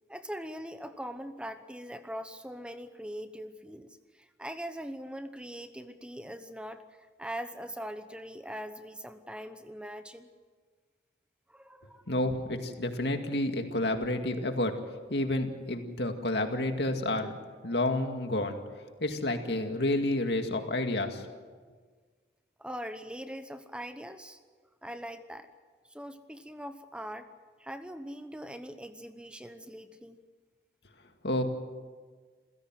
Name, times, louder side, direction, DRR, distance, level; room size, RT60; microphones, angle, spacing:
voice 1, 0.1-10.3 11.5-12.0 22.6-24.4 24.8-25.5 25.9-27.3 27.6-30.2, equal, 5° right, 9 dB, 0.8 m, -41 dB
voice 2, 12.1-14.7 15.1-17.3 17.6-18.6 19.0-21.3 31.2-31.4, left 1 dB, 75° left, 5 dB, 2.2 m, -30 dB
28.0 x 16.0 x 7.7 m, 1.5 s
head